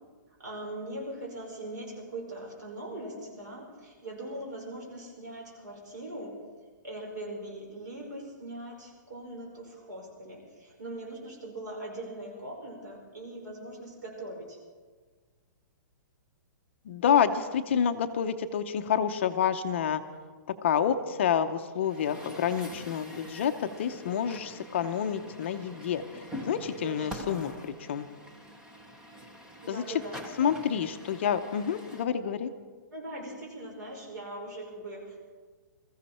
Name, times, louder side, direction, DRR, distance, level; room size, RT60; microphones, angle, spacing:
voice 1, 0.4-6.4 6.8-14.6 26.8-27.5 29.6-30.5 32.9-35.2, right 1 dB, 65° right, 0 dB, 5.4 m, -41 dB
voice 2, 16.8-20.0 20.6-28.1 29.7-29.8 30.4-32.5, left 8 dB, 35° left, 9 dB, 0.6 m, -28 dB
Truck, 21.8-32.0, equal, 5° right, 0.7 m, -45 dB
21.5 x 14.5 x 4.3 m, 1.5 s
hypercardioid pair, 180°, 10 cm